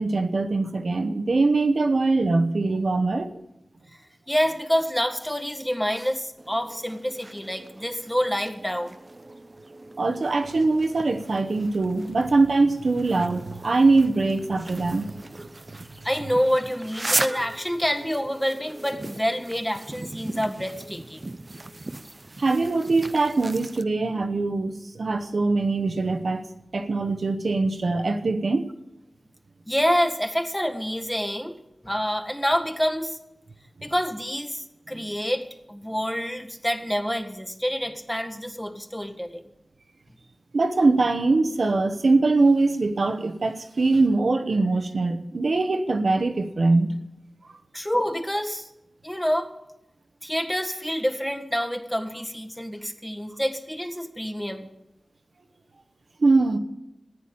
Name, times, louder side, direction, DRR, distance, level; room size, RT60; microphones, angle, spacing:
voice 1, 0.0-3.3 10.0-15.1 22.4-26.4 26.7-28.7 40.5-46.9 56.2-56.6, right 3 dB, 75° right, 1.0 m, -22 dB
voice 2, 4.3-9.0 16.0-21.2 29.7-31.6 31.8-33.2 33.8-39.4 47.7-48.7 49.0-49.5 50.2-54.7, equal, 10° left, 1.6 m, -27 dB
sound 1, 6.4-23.8, right 2 dB, 40° right, 0.7 m, -37 dB
14.0 x 9.2 x 8.6 m
cardioid pair, 45°, 0 cm